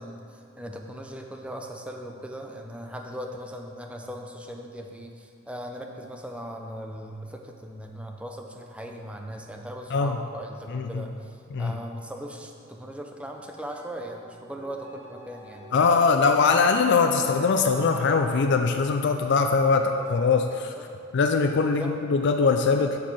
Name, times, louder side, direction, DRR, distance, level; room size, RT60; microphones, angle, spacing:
voice 1, 0.0-16.0 20.8-20.9 21.8-22.0, equal, 5° right, 2 dB, 0.6 m, -39 dB
voice 2, 10.7-11.0 11.5-11.8 15.7-20.7 21.1-23.0, left 4 dB, 55° left, 5 dB, 0.4 m, -22 dB
sound 1, 13.4-20.3, equal, 75° right, 2.0 m, -47 dB
7.5 x 4.7 x 7.2 m, 2.5 s
head